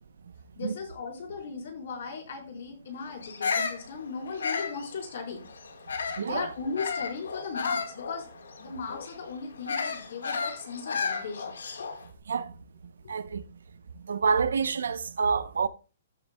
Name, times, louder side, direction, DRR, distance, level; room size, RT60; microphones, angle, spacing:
voice 1, 0.6-5.4 6.2-8.3 8.6-11.5 11.8-11.9 13.0-13.2, left 5 dB, 65° left, 4.4 m, -37 dB
Bird vocalization bird call bird song, 3.2-6.3 6.8-12.1, left 5 dB, 90° left, 1.7 m, -33 dB
voice 2, 6.2-6.5 12.3-12.5 13.1-13.4 14.1-15.7, right 5 dB, 85° right, 0.8 m, -27 dB
15.0 x 7.3 x 2.3 m
hypercardioid pair, 145°, 0 cm